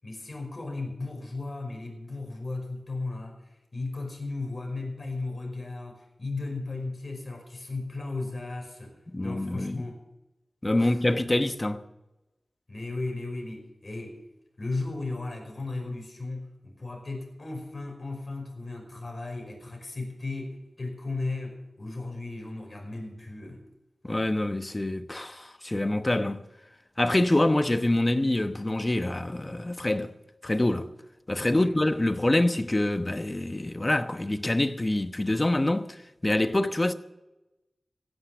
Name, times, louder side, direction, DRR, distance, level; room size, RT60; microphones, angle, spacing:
voice 1, 0.0-10.0 10.8-11.0 12.7-14.2 14.6-23.6 31.4-31.8, left 3 dB, 40° left, 5.3 m, -36 dB
voice 2, 9.1-9.9 10.6-11.8 24.0-26.4 27.0-30.1 30.4-30.9 31.3-36.9, left 1 dB, 25° left, 1.0 m, -26 dB
16.0 x 10.0 x 6.7 m
wide cardioid pair, 80°, 0 cm